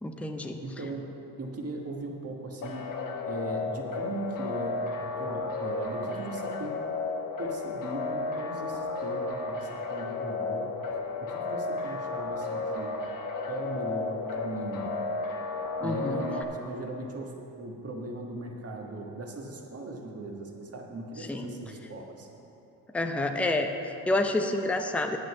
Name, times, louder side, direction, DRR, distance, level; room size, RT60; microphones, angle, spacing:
voice 1, 0.0-0.6 15.8-16.2 21.3-21.5 22.9-25.2, left 2 dB, 5° left, 5 dB, 0.7 m, -28 dB
voice 2, 0.6-2.9 3.2-6.8 7.4-10.7 11.2-12.9 13.5-14.9 15.8-22.3, right 2 dB, 30° right, 1 dB, 1.6 m, -38 dB
sound 1, 2.6-16.4, left 3 dB, 45° left, 1.2 m, -33 dB
9.0 x 6.5 x 7.0 m, 3.0 s
hypercardioid pair, 65°, 46 cm